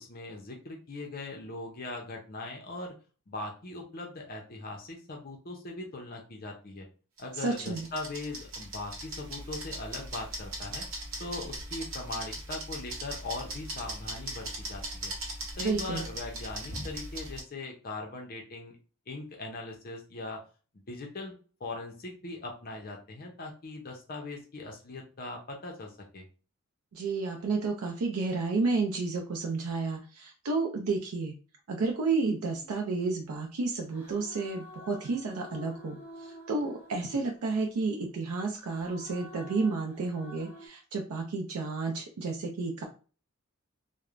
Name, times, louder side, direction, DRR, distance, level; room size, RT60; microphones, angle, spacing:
voice 1, 0.0-2.9 3.3-6.9 7.2-10.9 11.2-15.1 15.6-18.7 19.1-20.4 20.9-21.3 21.6-26.3, left 2 dB, 40° left, 1 dB, 0.5 m, -40 dB
sound 1, 7.2-17.4, right 1 dB, 60° right, 0.7 m, -39 dB
voice 2, 7.4-7.9 15.6-16.1 26.9-31.3 31.7-42.9, right 3 dB, 90° right, 1 dB, 0.4 m, -31 dB
sound 2, 31.8-33.3 33.9-37.7 38.6-40.7, left 1 dB, 10° right, 0.6 m, -50 dB
3.1 x 2.0 x 2.4 m, 0.36 s
head